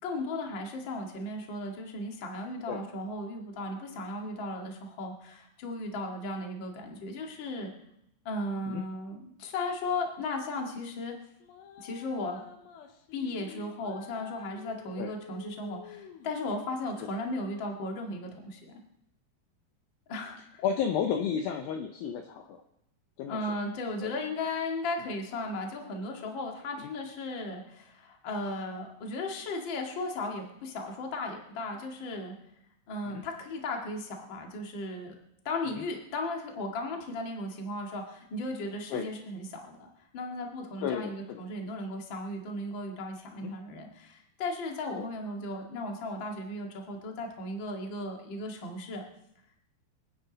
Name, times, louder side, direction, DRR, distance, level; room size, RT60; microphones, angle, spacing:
voice 1, 0.0-7.7 8.2-11.2 11.8-12.4 13.1-18.8 20.1-20.6 23.3-32.4 32.9-35.1 35.4-49.0, left 2 dB, 40° left, 1 dB, 2.0 m, -36 dB
sound 1, 11.4-16.4, left 9 dB, 90° left, 3.5 m, -49 dB
voice 2, 20.6-22.6 23.2-23.4 24.0-24.1 26.8-26.9 33.1-33.2 35.7-35.8 38.9-39.1 40.8-41.4 43.3-43.5 45.0-45.1, left 7 dB, 75° left, 5 dB, 2.3 m, -32 dB
28.0 x 9.8 x 4.0 m, 0.77 s
omnidirectional pair, 4.9 m